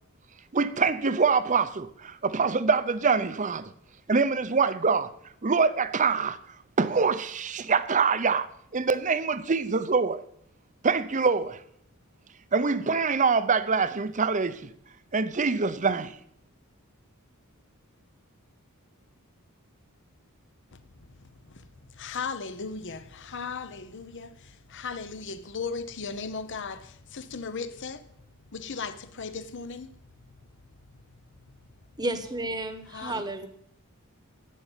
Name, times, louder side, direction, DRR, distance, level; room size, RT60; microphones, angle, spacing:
voice 1, 0.5-3.7 4.1-5.1 5.4-6.4 6.8-10.2 10.8-11.6 12.5-14.7 15.1-16.2, right 5 dB, 35° right, 0.7 m, -25 dB
voice 2, 21.1-21.7 21.9-28.1 28.5-29.9 32.9-33.3, left 5 dB, 55° left, 0.9 m, -37 dB
voice 3, 32.0-33.5, right 1 dB, 20° right, 1.1 m, -32 dB
14.0 x 5.5 x 9.1 m
head